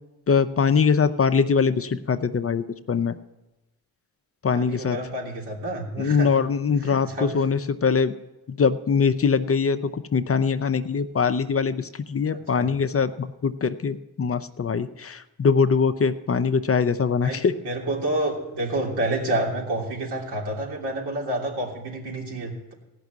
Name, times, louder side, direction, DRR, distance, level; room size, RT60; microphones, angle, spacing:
voice 1, 0.3-3.1 4.4-5.0 6.0-8.1 8.5-17.5, left 5 dB, 35° left, 10 dB, 0.7 m, -22 dB
voice 2, 4.5-6.3 6.8-7.3 12.5-12.7 17.2-22.7, right 1 dB, 80° right, -2 dB, 3.2 m, -29 dB
16.0 x 6.1 x 9.3 m, 0.98 s
cardioid pair, 70°, 39 cm